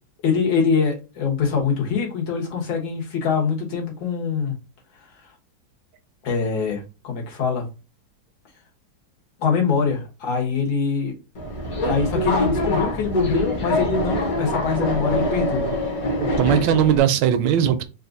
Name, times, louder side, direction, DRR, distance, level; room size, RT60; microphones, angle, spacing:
voice 1, 0.2-4.6 6.2-7.6 9.4-11.1 11.8-15.7, left 6 dB, 80° left, 2.1 m, -24 dB
Subway metro underground, 11.4-17.0, left 1 dB, 50° left, 1.5 m, -24 dB
voice 2, 16.2-17.8, right 9 dB, 75° right, 1.2 m, -19 dB
4.1 x 2.5 x 3.8 m
omnidirectional pair, 2.1 m